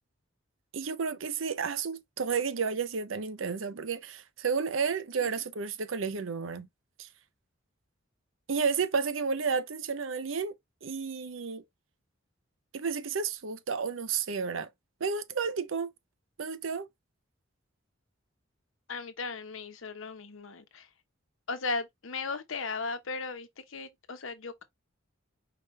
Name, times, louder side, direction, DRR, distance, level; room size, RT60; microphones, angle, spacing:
voice 1, 0.7-6.7 7.0-7.1 8.5-10.5 10.8-11.6 12.7-14.7 15.0-15.9 16.4-16.9, right 5 dB, 75° right, 0.7 m, -31 dB
voice 2, 18.9-20.9 21.5-24.6, left 4 dB, 75° left, 0.9 m, -36 dB
5.0 x 3.3 x 3.1 m
head